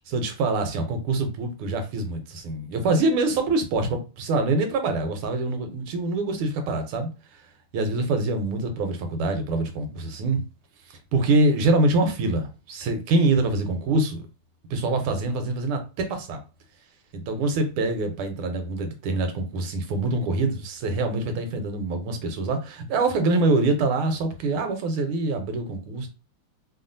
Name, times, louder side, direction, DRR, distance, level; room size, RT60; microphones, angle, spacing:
voice 1, 0.1-7.4 7.7-10.4 10.9-14.2 14.7-16.4 17.1-26.1, right 2 dB, 85° right, 1.6 m, -25 dB
3.5 x 2.3 x 2.5 m
omnidirectional pair, 2.3 m